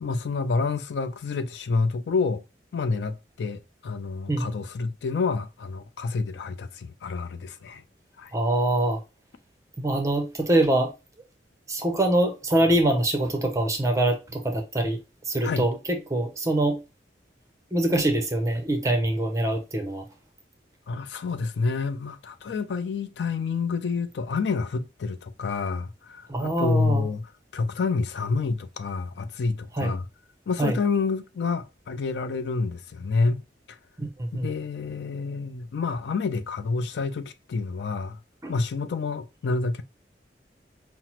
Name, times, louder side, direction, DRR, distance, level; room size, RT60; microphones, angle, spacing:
voice 1, 0.0-2.4 2.7-7.8 8.2-8.3 15.4-15.7 20.9-30.1 30.5-33.4 33.7-33.8 34.4-38.2 38.5-39.8, left 4 dB, 70° left, 0.4 m, -28 dB
voice 2, 8.3-9.0 9.8-10.9 11.7-15.0 15.3-16.8 17.7-20.0 26.3-27.1 29.7-29.9 30.6-30.8 34.0-34.5 38.4-38.5, right 1 dB, 20° right, 0.6 m, -24 dB
5.7 x 2.0 x 2.9 m
head